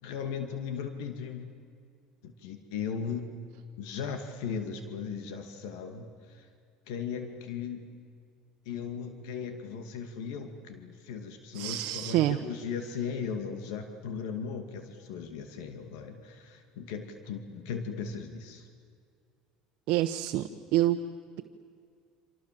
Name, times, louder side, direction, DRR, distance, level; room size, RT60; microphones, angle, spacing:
voice 1, 0.0-1.5 2.2-3.3 3.8-6.5 6.9-7.9 8.7-18.7, left 6 dB, 90° left, 7 dB, 2.4 m, -37 dB
voice 2, 11.5-12.4 19.9-21.0, right 14 dB, 65° right, 5 dB, 1.1 m, -27 dB
27.0 x 27.0 x 7.7 m, 2.2 s
cardioid pair, 125°, 2 cm